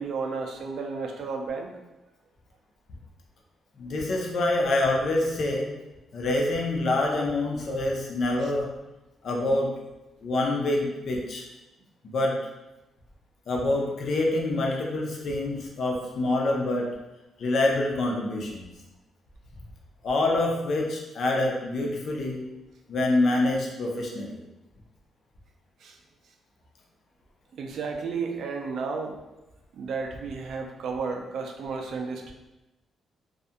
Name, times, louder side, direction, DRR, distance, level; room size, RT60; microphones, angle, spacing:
voice 1, 0.0-1.7 25.8-26.0 27.6-29.2 29.7-32.3, right 4 dB, 60° right, 3 dB, 0.3 m, -32 dB
voice 2, 3.8-5.7 6.1-8.7 9.2-9.7 10.2-11.5 12.0-12.4 13.5-16.9 17.4-18.7 20.0-22.4 22.9-24.3, left 2 dB, 50° left, 0 dB, 0.5 m, -26 dB
2.4 x 2.1 x 2.6 m, 1.0 s
cardioid pair, 155°, 0 cm